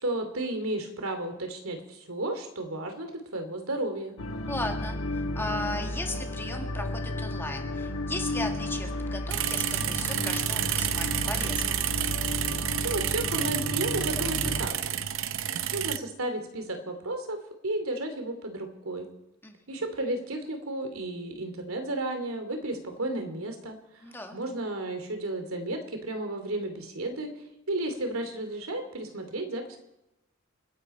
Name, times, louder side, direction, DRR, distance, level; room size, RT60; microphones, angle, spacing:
voice 1, 0.0-4.1 12.6-15.0 15.7-19.1 19.7-23.8 24.3-27.3 27.7-29.8, right 1 dB, 90° right, 6 dB, 2.9 m, -33 dB
sound 1, 4.2-14.7, left 1 dB, 80° left, 1.4 m, -33 dB
voice 2, 4.5-11.8 19.4-19.9 24.0-24.4, left 2 dB, 10° left, 3 dB, 1.7 m, -37 dB
sound 2, 9.3-16.0, right 10 dB, 70° right, 0.7 m, -30 dB
29.5 x 10.5 x 4.4 m, 0.93 s
head